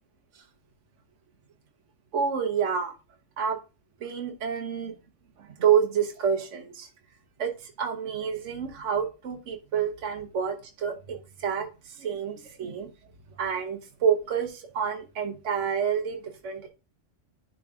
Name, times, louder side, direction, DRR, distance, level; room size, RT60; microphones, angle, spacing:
voice 1, 2.1-2.9 3.4-3.6 4.0-4.9 5.6-6.9 7.4-11.7 12.0-12.9 13.4-16.7, right 7 dB, 65° right, 3 dB, 1.4 m, -28 dB
10.5 x 3.8 x 3.6 m, 0.31 s
omnidirectional pair, 1.4 m